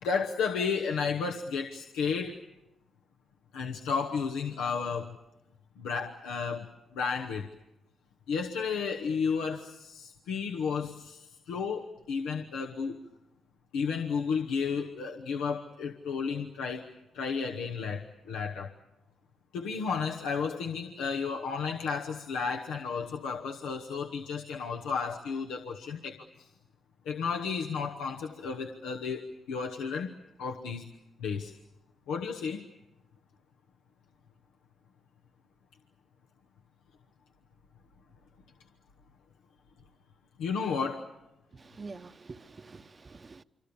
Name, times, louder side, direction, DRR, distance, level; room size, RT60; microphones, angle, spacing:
voice 1, 0.0-2.4 3.5-5.2 5.8-7.5 8.3-13.0 13.7-16.9 17.1-18.7 19.5-26.5 27.1-30.1 30.4-30.9 31.2-31.5 32.1-32.6 40.4-41.1, left 5 dB, 85° left, 1.0 m, -33 dB
voice 2, 41.5-43.4, right 4 dB, 40° right, 0.9 m, -46 dB
26.5 x 24.5 x 7.0 m
supercardioid pair, 50°, 0 cm